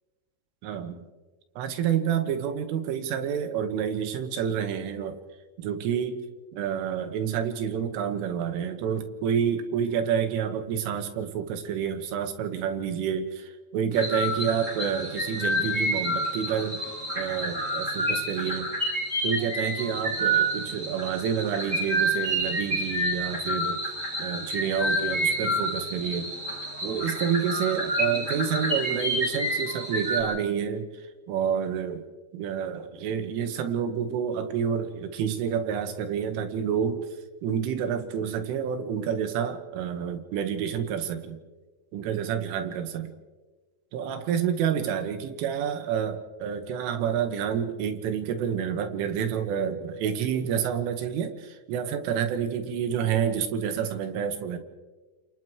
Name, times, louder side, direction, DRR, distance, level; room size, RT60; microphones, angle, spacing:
voice 1, 0.6-1.1 1.6-5.2 5.6-6.2 6.5-16.8 17.2-18.7 19.2-23.8 24.2-26.3 26.8-32.0 32.3-37.1 37.4-41.4 41.9-43.1 43.9-54.6, right 8 dB, 85° right, 7 dB, 3.9 m, -29 dB
sound 1, 13.9-30.2, right 1 dB, 15° right, 7.4 m, -29 dB
29.5 x 27.5 x 3.2 m, 1.3 s
omnidirectional pair, 5.7 m